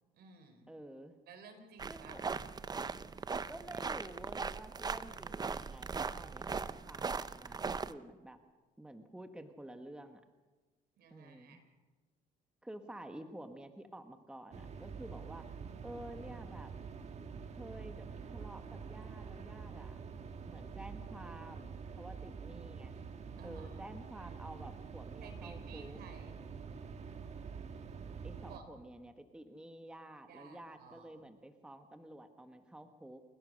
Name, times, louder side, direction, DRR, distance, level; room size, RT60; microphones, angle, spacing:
voice 1, 0.1-0.7 1.3-2.2 11.0-11.7 23.3-23.9 25.2-26.4 28.5-28.8 30.2-31.3, right 5 dB, 70° right, 7 dB, 4.2 m, -55 dB
voice 2, 0.7-1.2 1.9-2.3 3.5-8.4 8.8-10.2 11.1-11.6 12.6-15.5 15.8-16.7 17.6-20.0 20.4-22.9 23.4-26.0 28.2-33.2, right 1 dB, 5° right, 7 dB, 1.4 m, -50 dB
sound 1, 1.8-7.9, right 5 dB, 25° right, 0.7 m, -39 dB
sound 2, 14.5-28.6, right 5 dB, 40° right, 1.7 m, -46 dB
28.5 x 16.5 x 6.4 m, 1.3 s
cardioid pair, 110°, 17 cm